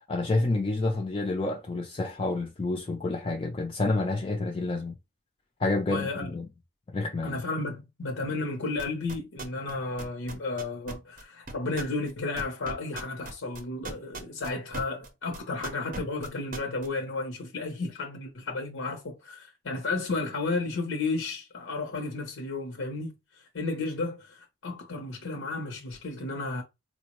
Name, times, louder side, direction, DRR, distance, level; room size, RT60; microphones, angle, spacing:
voice 1, 0.1-4.9 5.6-6.5 6.9-7.4, left 2 dB, 25° left, 0.3 m, -29 dB
voice 2, 5.9-6.3 7.2-23.1 23.5-26.6, left 3 dB, 80° left, 0.6 m, -33 dB
sound 1, 8.8-9.7 10.0-15.1 15.3-16.9, right 2 dB, 40° right, 0.5 m, -38 dB
4.2 x 2.0 x 2.9 m
head